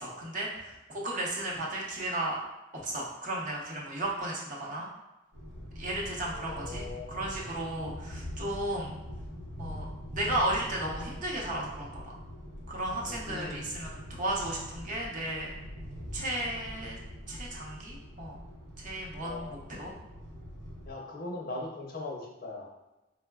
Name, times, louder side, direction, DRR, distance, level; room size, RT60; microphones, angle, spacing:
voice 1, 0.0-2.4 2.8-4.9 5.8-9.0 9.6-9.8 10.1-12.1 12.7-15.6 16.1-17.0 17.3-18.4 18.8-19.9, right 1 dB, 45° right, -3 dB, 0.6 m, -34 dB
sound 1, 5.3-20.9, equal, 90° right, 0.8 m, -43 dB
voice 2, 6.2-7.6 13.0-13.7 19.2-19.7 20.8-22.7, left 2 dB, 50° left, -1 dB, 0.6 m, -41 dB
4.5 x 2.0 x 2.2 m, 1.0 s
head